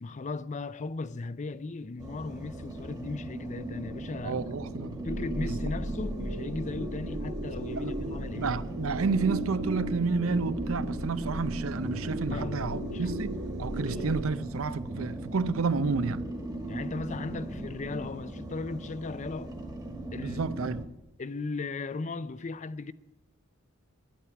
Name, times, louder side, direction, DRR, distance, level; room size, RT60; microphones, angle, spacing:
voice 1, 0.0-4.4 5.0-8.6 12.3-13.2 13.9-14.1 16.6-19.6 20.1-20.4 21.2-22.9, left 3 dB, 35° left, 0.4 m, -37 dB
sound 1, 2.0-20.8, right 1 dB, 20° right, 1.5 m, -39 dB
voice 2, 4.2-5.1 5.4-5.6 7.8-8.0 8.4-13.3 13.6-16.3 20.2-20.9, right 4 dB, 75° right, 0.6 m, -30 dB
sound 2, 5.0-14.2, right 1 dB, 60° right, 2.1 m, -36 dB
11.0 x 8.9 x 8.2 m
head